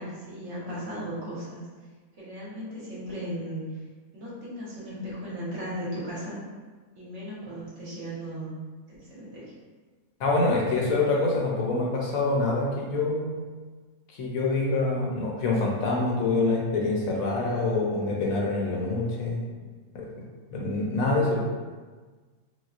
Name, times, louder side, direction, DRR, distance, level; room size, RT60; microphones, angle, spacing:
voice 1, 0.0-1.7 2.1-3.6 4.1-6.4 7.0-8.5 8.9-9.5 21.2-21.4, equal, 55° right, -8 dB, 1.1 m, -36 dB
voice 2, 10.2-13.4 14.2-19.4 19.9-21.4, left 3 dB, 70° left, -2 dB, 1.0 m, -26 dB
4.1 x 2.0 x 2.4 m, 1.4 s
omnidirectional pair, 1.6 m